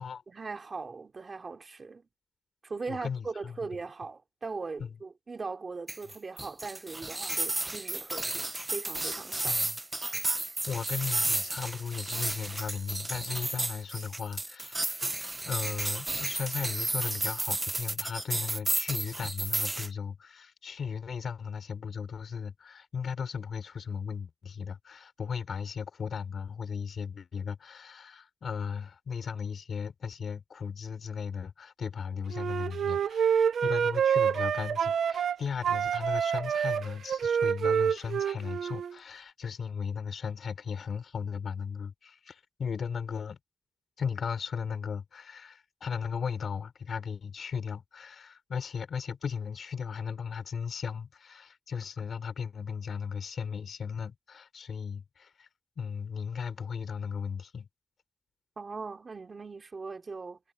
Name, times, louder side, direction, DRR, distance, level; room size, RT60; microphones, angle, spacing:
voice 1, 0.3-2.0 2.6-9.6 58.6-60.4, right 4 dB, 30° right, 3.4 m, -40 dB
voice 2, 2.9-3.6 4.8-4.9 9.4-9.8 10.7-43.4 44.0-55.5 55.8-57.7, left 6 dB, 55° left, 6.3 m, -36 dB
sound 1, 5.9-19.9, right 2 dB, 15° right, 0.9 m, -32 dB
Wind instrument woodwind instrument, 32.3-35.4 35.6-38.9, right 8 dB, 70° right, 0.6 m, -27 dB
wide cardioid pair, 175°, 0 cm